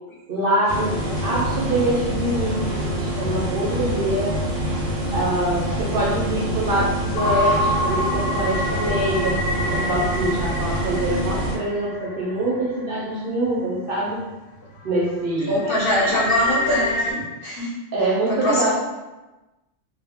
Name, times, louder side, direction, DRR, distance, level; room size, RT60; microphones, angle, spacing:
voice 1, 0.3-0.9 1.2-4.4 5.1-9.4 9.7-14.2 14.8-15.6 17.9-18.7, right 1 dB, 55° right, -5 dB, 0.7 m, -24 dB
sound 1, 0.7-11.6, right 1 dB, 85° right, 1.0 m, -26 dB
sound 2, 7.2-12.9 13.5-13.6 14.1-14.3 14.7-17.1, left 1 dB, 90° left, 1.0 m, -27 dB
voice 2, 15.5-17.8 18.4-18.7, equal, 55° left, -5 dB, 0.8 m, -23 dB
2.2 x 2.0 x 3.4 m, 1.1 s
omnidirectional pair, 1.3 m